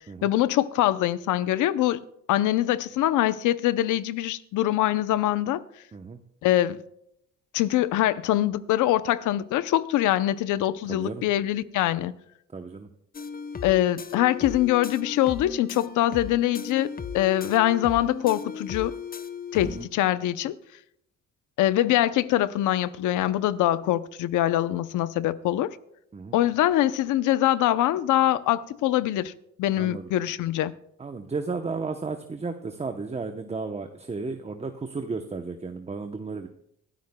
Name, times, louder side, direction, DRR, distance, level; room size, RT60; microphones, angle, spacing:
voice 1, 0.2-2.0 2.3-5.6 6.4-6.8 7.5-12.1 13.6-18.9 19.5-20.6 21.6-25.8 26.3-29.3 29.6-30.7, left 13 dB, 90° left, 0.7 m, -23 dB
voice 2, 10.9-11.2 12.5-12.9 19.6-19.9 26.1-26.4 29.7-30.1 31.0-36.5, right 4 dB, 20° right, 0.8 m, -34 dB
sound 1, 13.1-19.9, left 6 dB, 30° left, 0.7 m, -36 dB
24.0 x 13.0 x 2.2 m
cardioid pair, 90°, 30 cm